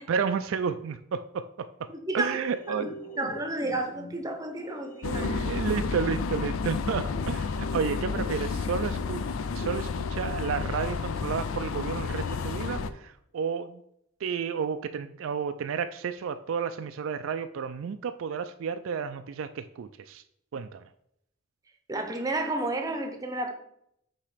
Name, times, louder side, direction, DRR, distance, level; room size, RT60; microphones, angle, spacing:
voice 1, 0.0-1.7 2.1-2.9 5.0-9.2 9.6-13.8 14.2-20.2 20.5-20.8, right 6 dB, 65° right, 0.3 m, -31 dB
voice 2, 1.9-2.4 2.8-5.2 21.9-23.5, right 2 dB, 15° right, 0.7 m, -31 dB
sound 1, 2.4-12.9, right 1 dB, 35° left, 0.7 m, -43 dB
sound 2, 5.0-12.9, left 5 dB, 75° left, 0.4 m, -31 dB
8.4 x 3.0 x 4.9 m
head